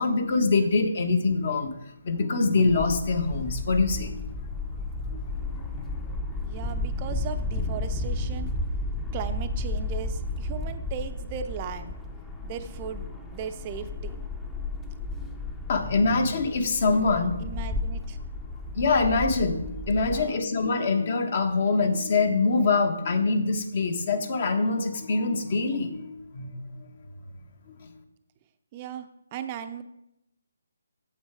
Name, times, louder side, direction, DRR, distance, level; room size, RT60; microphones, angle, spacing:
voice 1, 0.0-1.7 2.0-4.2 5.1-5.3 15.7-17.5 18.7-26.9 27.8-27.9, left 3 dB, 50° left, 7 dB, 1.3 m, -24 dB
sound 1, 2.7-20.3, left 2 dB, 10° left, 0.7 m, -33 dB
voice 2, 6.4-8.5 9.1-11.9 12.4-14.1 17.4-18.2 20.0-20.4 28.7-29.8, right 8 dB, 30° right, 8 dB, 0.5 m, -37 dB
8.2 x 7.4 x 4.7 m, 0.82 s
figure-of-eight pair, 150°, 0 cm